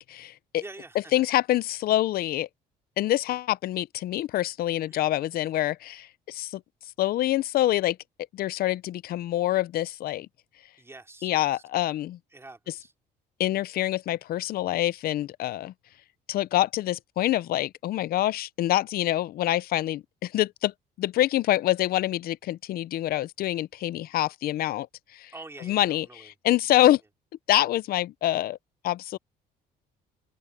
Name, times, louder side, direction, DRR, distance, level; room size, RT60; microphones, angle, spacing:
voice 1, 0.0-0.6 1.1-2.5 3.0-6.6 7.0-8.0 8.3-10.3 11.2-12.2 13.4-15.7 16.3-20.7 21.0-24.9 25.1-25.3 25.6-27.0 27.5-28.6 28.8-29.2, left 14 dB, 65° left, 0.6 m, -26 dB
voice 2, 0.6-1.2 4.9-5.0 10.8-11.6 12.3-12.9 25.3-26.3, right 2 dB, 15° right, 3.4 m, -46 dB
cardioid pair, 110°, 17 cm